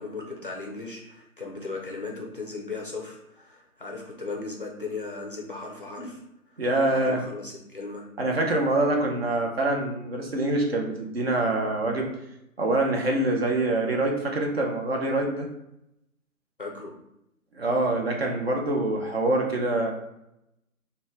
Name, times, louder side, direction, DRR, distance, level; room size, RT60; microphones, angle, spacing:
voice 1, 0.0-6.2 6.5-8.1 16.6-17.0, left 3 dB, 40° left, 0 dB, 0.4 m, -37 dB
voice 2, 6.6-7.3 8.2-12.1 12.6-15.5 17.5-19.9, right 2 dB, 45° right, 1 dB, 0.6 m, -25 dB
4.2 x 2.2 x 3.2 m, 0.84 s
figure-of-eight pair, 140°, 44 cm